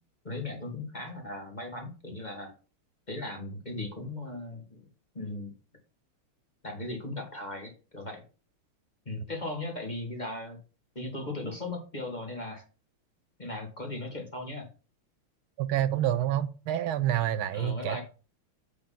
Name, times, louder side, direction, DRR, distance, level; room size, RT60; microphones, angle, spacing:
voice 1, 0.2-2.5 3.1-4.8 5.1-5.5 6.6-8.2 9.1-10.6 11.0-12.6 13.4-14.7 17.5-18.0, left 2 dB, 20° left, 1.9 m, -37 dB
voice 2, 15.6-18.0, right 12 dB, 80° right, 1.5 m, -28 dB
7.8 x 5.1 x 5.7 m
omnidirectional pair, 2.3 m